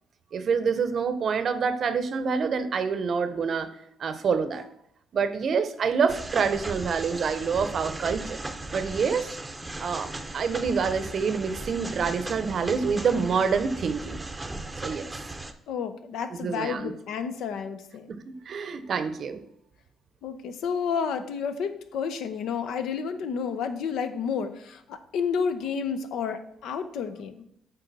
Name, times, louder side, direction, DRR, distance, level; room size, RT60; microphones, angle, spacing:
voice 1, 0.3-3.7 4.0-4.6 5.1-8.4 8.7-9.4 9.8-14.2 14.8-15.1 16.3-16.9 18.1-19.4, right 5 dB, 55° right, 12 dB, 0.7 m, -27 dB
sound 1, 6.1-15.5, right 2 dB, 15° right, 0.6 m, -37 dB
voice 2, 15.7-18.1 20.2-27.3, left 6 dB, 80° left, 10 dB, 0.6 m, -30 dB
8.1 x 4.0 x 4.1 m, 0.73 s
cardioid pair, 90°, 0 cm